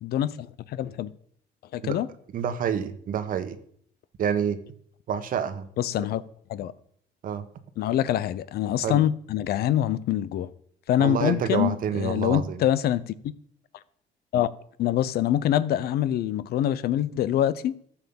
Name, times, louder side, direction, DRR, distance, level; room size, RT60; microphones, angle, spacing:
voice 1, 0.0-1.1 1.7-2.1 5.8-6.2 6.5-6.7 7.8-10.5 10.9-13.1 14.3-14.5 14.8-17.8, left 11 dB, 65° left, 0.7 m, -25 dB
voice 2, 2.3-3.6 4.2-4.6 5.1-5.7 6.0-6.1 7.2-7.4 8.8-9.0 11.0-12.6, right 8 dB, 55° right, 1.2 m, -28 dB
13.0 x 7.2 x 7.1 m
cardioid pair, 110°, 17 cm